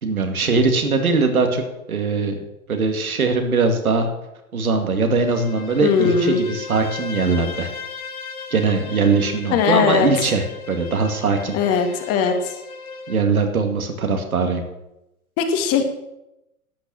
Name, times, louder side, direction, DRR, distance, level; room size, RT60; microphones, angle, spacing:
voice 1, 0.0-1.6 1.9-2.4 2.7-4.1 4.5-7.7 8.5-11.6 13.1-14.6, right 4 dB, 75° right, 4 dB, 2.3 m, -21 dB
Bowed string instrument, 5.0-13.3, left 4 dB, 80° left, 1.5 m, -36 dB
voice 2, 5.8-6.4 9.5-10.1 11.5-12.6 15.4-15.8, left 6 dB, 35° left, 5 dB, 1.9 m, -19 dB
12.0 x 8.6 x 6.4 m, 0.90 s
figure-of-eight pair, 105°, 43 cm